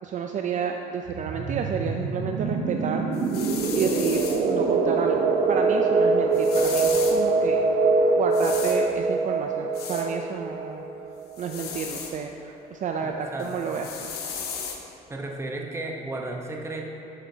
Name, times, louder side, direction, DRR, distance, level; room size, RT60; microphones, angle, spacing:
voice 1, 0.0-3.1 3.7-4.2 4.5-7.6 8.1-10.8 11.4-14.1, right 6 dB, 45° right, 3 dB, 0.5 m, -30 dB
sound 1, 1.1-11.6, right 3 dB, 65° right, 0.9 m, -24 dB
sound 2, 3.1-4.4 6.3-7.2 8.3-8.8 9.7-10.1 11.3-12.2 13.4-14.8, left 6 dB, 75° left, 1.0 m, -35 dB
voice 2, 13.0-13.5 15.1-16.9, right 2 dB, 15° right, 0 dB, 1.0 m, -34 dB
11.0 x 7.3 x 2.8 m, 2.8 s
cardioid pair, 110°, 17 cm